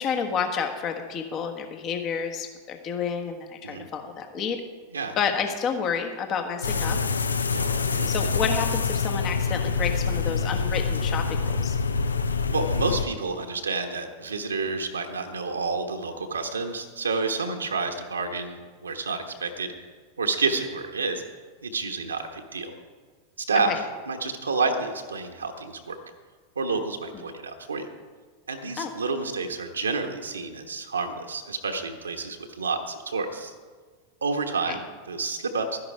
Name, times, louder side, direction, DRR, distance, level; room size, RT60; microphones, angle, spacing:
voice 1, 0.0-4.6 5.2-7.0 8.1-11.8 23.7-23.8 28.8-28.9 34.7-34.8, left 6 dB, 35° left, 4 dB, 1.3 m, -30 dB
sound 1, 6.6-13.1, left 4 dB, 80° left, 0.6 m, -26 dB
voice 2, 7.5-8.1 12.5-19.7 20.2-21.2 21.6-22.8 23.5-26.0 26.6-27.9 28.5-33.5 34.2-35.8, right 4 dB, 80° right, 4 dB, 1.1 m, -29 dB
12.5 x 10.5 x 4.7 m, 1.5 s
figure-of-eight pair, 90°, 0 cm